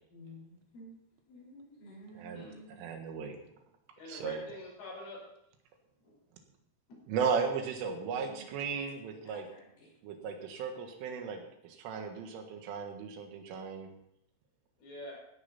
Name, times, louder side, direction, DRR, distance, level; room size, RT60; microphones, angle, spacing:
voice 1, 0.1-0.9 1.3-2.8 8.1-9.9, equal, 45° left, -4 dB, 5.5 m, -52 dB
voice 2, 2.2-2.5 2.8-3.4 4.1-4.4 7.1-9.5 10.0-13.9, right 6 dB, 80° right, 4 dB, 4.1 m, -36 dB
voice 3, 4.0-5.2 6.0-6.2 6.9-7.0 14.8-15.2, left 2 dB, 75° left, -3 dB, 7.7 m, -44 dB
17.0 x 10.5 x 4.2 m, 0.76 s
omnidirectional pair, 5.7 m